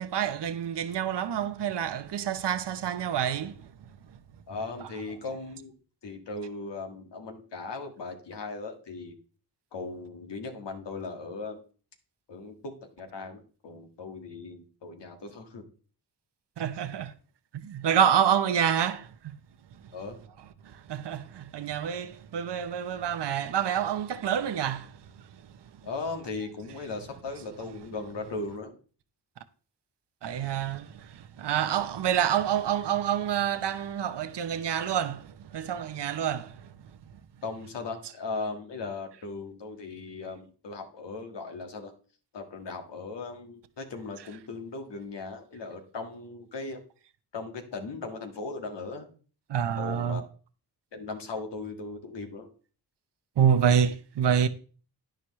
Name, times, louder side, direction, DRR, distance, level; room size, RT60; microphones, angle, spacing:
voice 1, 0.0-3.6 16.6-17.1 17.6-19.1 20.6-25.0 30.2-36.7 49.5-50.2 53.4-54.5, right 8 dB, 80° right, 0.9 m, -27 dB
voice 2, 4.5-5.7 6.0-9.2 9.7-11.6 12.3-15.6 19.9-20.2 25.8-28.7 37.4-41.9 42.3-46.8 47.3-49.1 49.8-50.3 50.9-52.5, left 3 dB, 90° left, 1.9 m, -38 dB
10.0 x 10.0 x 3.1 m
cardioid pair, 60°, 41 cm